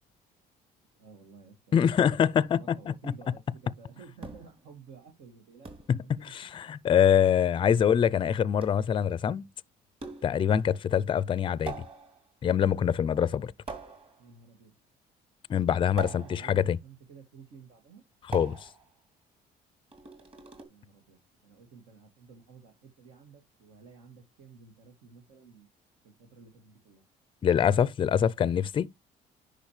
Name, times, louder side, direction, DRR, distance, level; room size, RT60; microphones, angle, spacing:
voice 1, 1.0-6.3 14.2-14.8 15.9-18.0 20.7-25.7 26.0-27.0, right 5 dB, 85° right, 2.3 m, -53 dB
voice 2, 1.7-2.6 5.9-6.0 6.3-9.4 10.2-11.8 12.4-13.5 15.5-16.8 18.3-18.6 27.4-28.9, left 8 dB, 30° left, 0.4 m, -24 dB
sound 1, 4.2-4.6 5.6-6.0 7.0-7.3 8.6-8.9 10.0-10.5 11.7-12.3 13.7-14.3 16.0-16.6 18.3-18.9 19.9-20.6, right 5 dB, 35° right, 3.0 m, -43 dB
10.5 x 5.1 x 3.2 m
cardioid pair, 110°, 17 cm